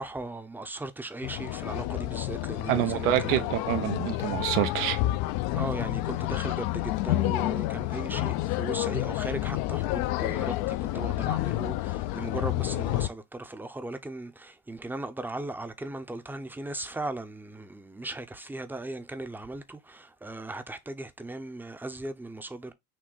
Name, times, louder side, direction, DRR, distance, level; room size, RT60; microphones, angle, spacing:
voice 1, 0.0-3.5 5.5-22.7, right 2 dB, 5° right, 0.5 m, -37 dB
sound 1, 1.2-13.1, left 17 dB, 60° left, 0.5 m, -29 dB
voice 2, 2.7-5.0, right 13 dB, 90° right, 0.8 m, -27 dB
6.3 x 2.1 x 3.8 m
supercardioid pair, 85°, 44 cm